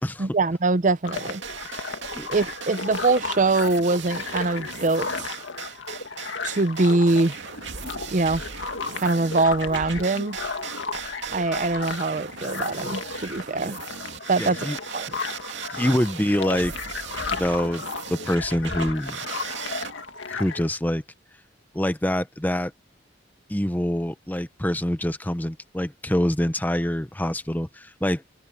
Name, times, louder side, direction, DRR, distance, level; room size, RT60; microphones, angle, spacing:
voice 1, 0.2-1.4 2.3-5.3 6.4-7.4 8.1-8.4 9.0-10.4 11.3-13.8 14.3-14.6 14.9-15.1, right 3 dB, 40° right, 0.6 m, -23 dB
sound 1, 1.0-20.7, left 4 dB, 80° left, 2.0 m, -34 dB
sound 2, 1.1-19.9, right 6 dB, 70° right, 2.5 m, -38 dB
voice 2, 14.4-14.8 15.7-16.7 17.3-17.8 18.1-19.2 20.3-21.0 21.7-22.7 23.5-28.2, left 1 dB, 10° left, 0.8 m, -25 dB
head